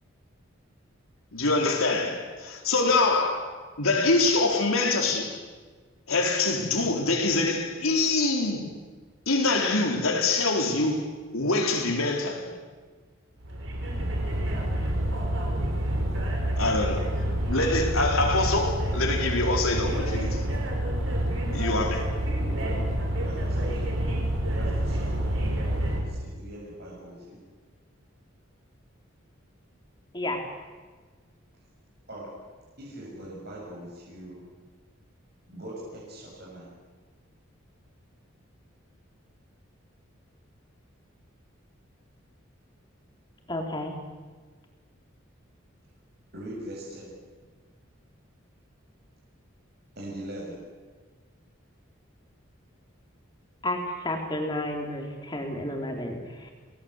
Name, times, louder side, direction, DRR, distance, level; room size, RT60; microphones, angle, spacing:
voice 1, 1.3-5.4 6.1-8.7 9.3-11.0 11.3-12.5 16.6-17.1 17.5-20.4 21.5-22.0, left 3 dB, 90° left, 4.4 m, -25 dB
sound 1, 13.4-26.0, right 1 dB, 65° right, 5.2 m, -28 dB
voice 2, 22.4-22.8 23.1-23.9 24.4-27.4 32.1-32.3 32.8-34.5 35.5-36.7 46.3-47.2 50.0-50.6, right 1 dB, 50° right, 7.7 m, -41 dB
voice 3, 43.5-43.9 53.6-56.5, left 1 dB, 20° left, 3.9 m, -31 dB
29.0 x 19.5 x 8.3 m
head